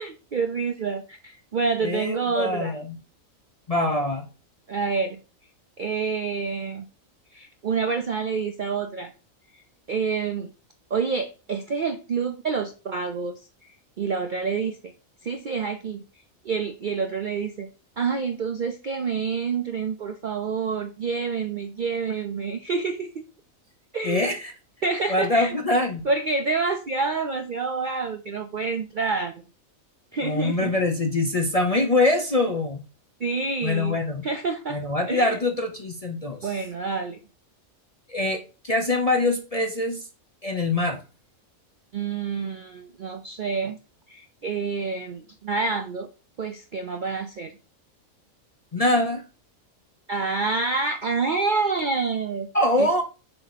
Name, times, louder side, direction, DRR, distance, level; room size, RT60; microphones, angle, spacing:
voice 1, 0.0-2.7 4.7-5.2 5.8-6.8 7.3-9.1 9.9-10.5 10.9-13.3 13.6-13.7 14.0-14.9 15.2-16.0 16.4-17.7 18.0-23.2 23.9-24.3 24.8-25.6 26.0-29.4 30.1-30.7 33.2-34.0 34.2-34.8 35.1-35.4 36.4-37.2 41.9-43.8 44.1-46.1 46.4-47.5 50.1-52.5 52.8-52.9, right 4 dB, 55° right, 7 dB, 0.5 m, -28 dB
voice 2, 1.8-3.0 3.7-4.3 24.0-24.5 25.1-26.1 30.2-32.8 33.6-34.2 34.7-36.5 38.1-40.0 40.4-41.0 48.7-49.2 52.5-53.0, left 2 dB, 35° left, 5 dB, 0.6 m, -24 dB
6.6 x 2.8 x 5.8 m, 0.33 s
omnidirectional pair, 1.5 m